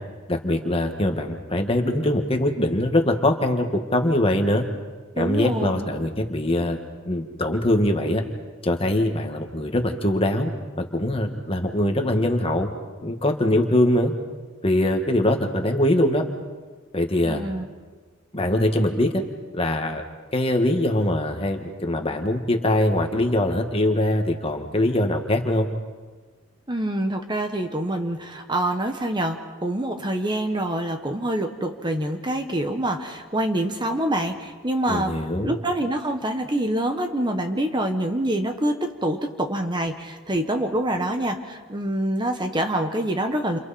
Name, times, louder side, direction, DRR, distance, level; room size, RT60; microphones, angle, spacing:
voice 1, 0.3-4.6 5.2-6.8 7.1-8.2 8.6-10.5 10.8-12.7 13.0-14.1 14.6-16.2 16.9-17.4 18.3-19.2 19.5-20.0 20.3-25.7 34.9-35.5, left 1 dB, 30° left, 4 dB, 1.9 m, -22 dB
voice 2, 5.1-5.9 17.2-17.6 26.7-35.1 35.4-43.6, right 1 dB, 20° right, 5 dB, 1.4 m, -26 dB
30.0 x 28.5 x 4.4 m, 1.4 s
head